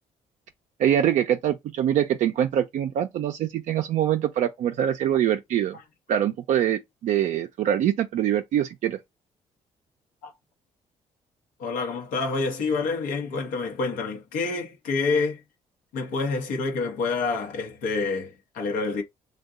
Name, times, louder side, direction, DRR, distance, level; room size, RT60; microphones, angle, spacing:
voice 1, 0.8-5.8 6.1-9.0, right 10 dB, 65° right, 0.4 m, -24 dB
voice 2, 11.6-15.4 15.9-19.0, left 4 dB, 85° left, 0.8 m, -27 dB
2.6 x 2.2 x 3.5 m
supercardioid pair, 65°, 14 cm